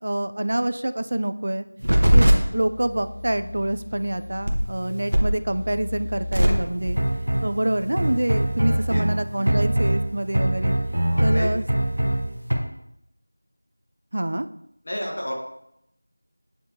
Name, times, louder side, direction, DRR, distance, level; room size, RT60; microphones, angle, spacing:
voice 1, 0.0-1.6 2.1-7.0 7.4-10.8 11.2-11.6 14.1-14.5, right 1 dB, 45° right, 11 dB, 0.3 m, -26 dB
sound 1, 1.8-12.6, right 1 dB, 70° right, 1.0 m, -23 dB
voice 2, 8.7-9.0 9.4-9.5 11.1-11.5 14.8-15.3, equal, 45° left, 0 dB, 1.3 m, -32 dB
8.3 x 4.2 x 2.7 m, 0.80 s
figure-of-eight pair, 175°, 0 cm